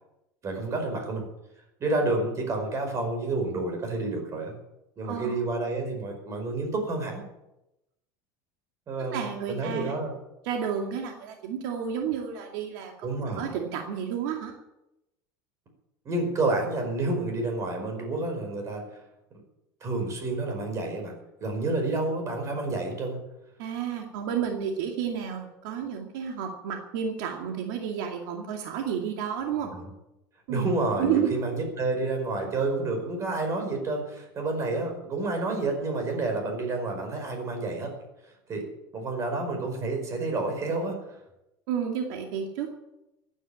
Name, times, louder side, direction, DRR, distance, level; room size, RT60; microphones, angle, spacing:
voice 1, 0.4-1.2 1.8-4.5 5.0-7.2 8.9-10.2 13.0-13.5 16.0-19.0 19.8-21.1 21.4-23.2 29.7-29.9 30.5-37.9 38.5-38.7 38.9-41.0, right 2 dB, 30° right, 4 dB, 5.0 m, -29 dB
voice 2, 5.0-5.4 9.0-9.9 10.4-14.5 23.6-29.7 30.5-31.3 41.7-42.7, right 8 dB, 70° right, 2 dB, 2.4 m, -31 dB
15.0 x 9.9 x 8.5 m, 0.91 s
supercardioid pair, 140°, 10 cm